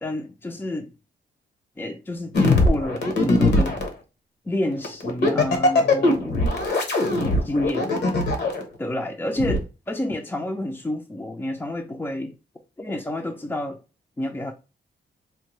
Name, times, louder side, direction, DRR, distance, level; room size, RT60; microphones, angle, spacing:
voice 1, 0.0-0.9 1.8-3.8 4.5-6.5 7.4-8.0 8.8-12.4 12.8-13.8 14.2-14.5, left 1 dB, 10° left, 0.4 m, -29 dB
sound 1, 2.3-3.9 4.8-8.6 9.4-9.6, left 2 dB, 70° left, 1.0 m, -20 dB
4.4 x 2.2 x 3.0 m
wide cardioid pair, 125°, 18 cm